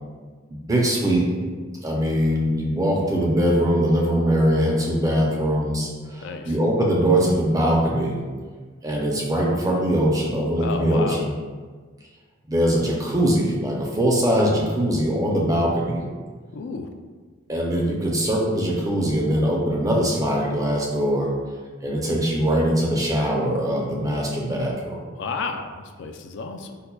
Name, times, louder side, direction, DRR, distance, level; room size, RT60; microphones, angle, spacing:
voice 1, 0.5-1.4 1.8-8.2 8.8-11.3 12.5-16.0 17.5-21.3 21.8-25.0, equal, 20° right, -2 dB, 0.5 m, -22 dB
voice 2, 6.2-6.6 10.6-11.3 16.5-16.9 25.2-26.8, left 4 dB, 60° left, 5 dB, 0.3 m, -32 dB
5.5 x 2.2 x 2.2 m, 1.5 s
head